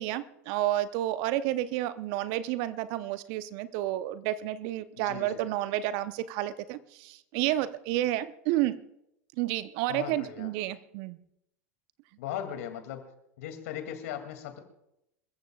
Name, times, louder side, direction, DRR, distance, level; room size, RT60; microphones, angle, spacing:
voice 1, 0.0-8.8 9.4-11.2, right 14 dB, 55° right, 14 dB, 0.8 m, -30 dB
voice 2, 5.0-5.5 9.9-10.5 12.2-13.0 13.4-14.6, left 10 dB, 65° left, 6 dB, 2.6 m, -38 dB
27.0 x 14.5 x 2.4 m, 0.81 s
hypercardioid pair, 85°, 8 cm